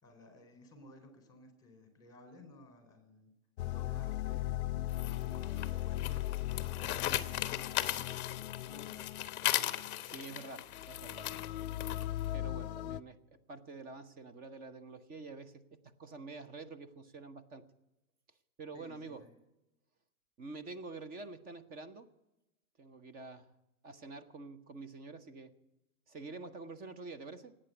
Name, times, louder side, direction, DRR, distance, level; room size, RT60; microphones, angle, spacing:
voice 1, 0.0-3.3 3.6-7.0 7.7-8.2 8.6-9.1 18.7-19.3, left 1 dB, 10° left, 5 dB, 4.1 m, -56 dB
sound 1, 3.6-13.0, left 15 dB, 50° left, 0.5 m, -39 dB
sound 2, 4.9-12.3, left 13 dB, 25° left, 0.9 m, -37 dB
voice 2, 10.0-11.3 12.3-13.2 13.5-17.7 18.6-19.2 20.4-22.1 22.8-23.5 23.8-25.5 26.1-27.6, right 3 dB, 20° right, 13 dB, 0.8 m, -47 dB
18.0 x 8.9 x 8.1 m, 0.96 s
hypercardioid pair, 130°, 45 cm